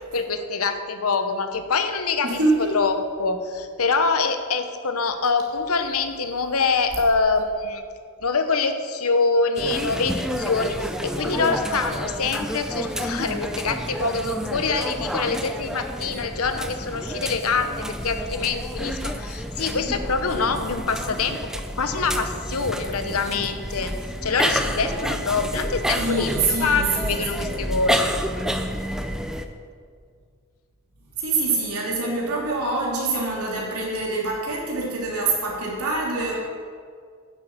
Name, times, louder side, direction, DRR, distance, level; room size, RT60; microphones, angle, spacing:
voice 1, 0.1-2.4 2.7-7.8 8.2-21.4 21.8-23.9 24.2-28.1, left 4 dB, 75° left, 8 dB, 1.0 m, -25 dB
voice 2, 2.2-2.8 9.9-10.0 26.0-27.4 31.2-36.4, right 3 dB, 90° right, -3 dB, 3.2 m, -25 dB
sound 1, 9.5-29.4, equal, 5° right, 0.5 m, -29 dB
9.6 x 7.8 x 7.4 m, 2.1 s
head